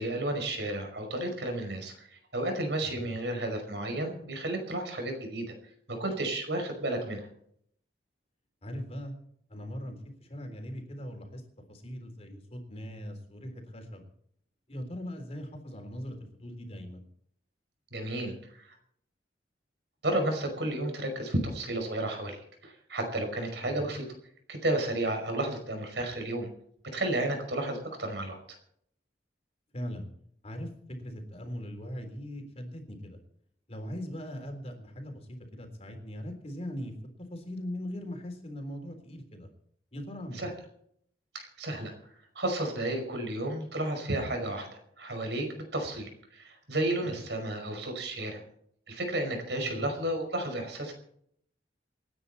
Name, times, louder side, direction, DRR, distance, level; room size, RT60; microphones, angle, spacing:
voice 1, 0.0-5.5 5.9-7.3 17.9-18.7 20.0-24.1 24.5-26.5 26.8-28.4 40.3-40.5 41.3-41.9 42.4-44.7 45.0-48.4 48.9-50.9, right 1 dB, 75° right, 4 dB, 5.3 m, -32 dB
voice 2, 8.6-9.1 9.5-11.4 11.7-14.1 14.7-17.0 23.6-23.7 29.7-30.1 30.4-33.2 33.7-37.0 37.3-39.5 39.9-40.6 49.6-49.8, equal, 35° left, 4 dB, 3.6 m, -40 dB
28.0 x 9.8 x 4.3 m, 0.68 s
head